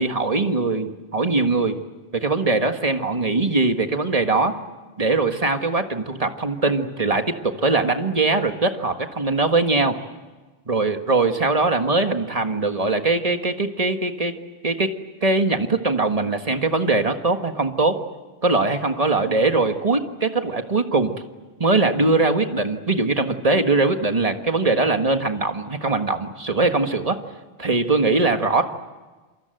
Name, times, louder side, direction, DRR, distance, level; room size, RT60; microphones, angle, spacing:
voice 1, 0.0-1.8 2.1-4.5 5.0-10.0 10.7-14.3 14.6-14.9 15.2-17.9 18.4-21.2 21.6-27.2 27.6-28.6, right 3 dB, 30° right, 6 dB, 1.7 m, -21 dB
28.0 x 23.5 x 7.9 m, 1.3 s
omnidirectional pair, 1.2 m